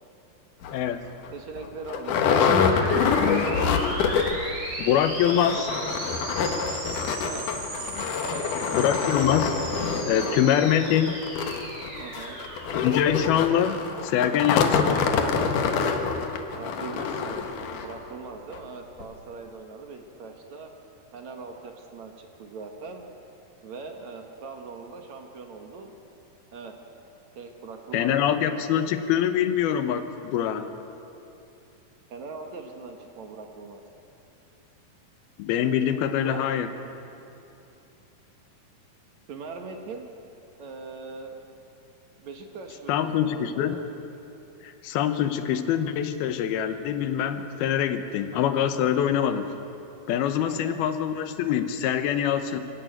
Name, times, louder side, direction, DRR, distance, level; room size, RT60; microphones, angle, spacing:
sound 1, 0.6-0.8 1.3-1.4 1.6-4.5 4.8-4.9 5.2-18.0 18.5-18.6 19.0-19.1, left 6 dB, 65° left, 2.7 m, -26 dB
voice 1, 0.7-1.0 4.8-5.7 8.7-9.5 10.0-11.2 12.7-15.0 27.9-30.7 35.4-36.7 42.9-43.8 44.6-49.5 50.1-52.6, left 9 dB, 90° left, 10 dB, 3.0 m, -24 dB
voice 2, 1.3-3.5 5.5-6.0 7.2-7.4 7.7-8.8 12.0-12.4 14.6-15.0 16.5-20.7 21.1-23.0 23.6-25.9 26.5-26.7 27.4-29.0 32.1-33.8 36.2-36.5 39.3-40.1 40.6-41.4 42.2-43.9 50.4-50.8, right 4 dB, 55° right, 4 dB, 2.5 m, -41 dB
sound 2, 2.1-13.8, right 1 dB, 90° right, 7.9 m, -36 dB
24.5 x 15.5 x 9.3 m, 2.8 s
omnidirectional pair, 4.3 m